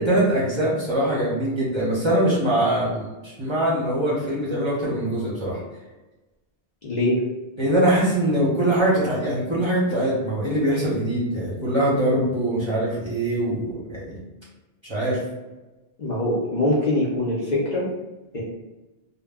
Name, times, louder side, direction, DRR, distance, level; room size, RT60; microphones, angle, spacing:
voice 1, 0.0-5.6 7.6-14.2 14.8-15.2, right 1 dB, 30° right, -8 dB, 0.6 m, -23 dB
voice 2, 6.8-7.2 16.0-17.9 18.3-18.4, left 1 dB, 45° left, -7 dB, 0.6 m, -23 dB
2.1 x 2.1 x 3.4 m, 1.1 s
omnidirectional pair, 1.2 m